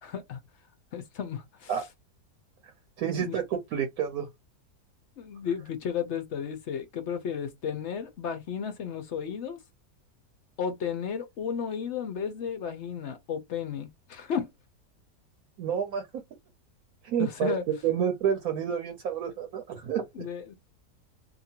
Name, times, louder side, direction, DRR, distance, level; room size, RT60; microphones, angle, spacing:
voice 1, 0.0-0.4 0.9-1.8 3.2-3.3 5.2-9.6 10.6-14.5 17.2-17.7 20.1-20.5, left 7 dB, 60° left, 0.7 m, -33 dB
voice 2, 3.0-4.3 15.6-16.0 17.0-17.6 17.8-20.3, right 8 dB, 70° right, 1.1 m, -29 dB
2.8 x 2.4 x 2.8 m
omnidirectional pair, 1.7 m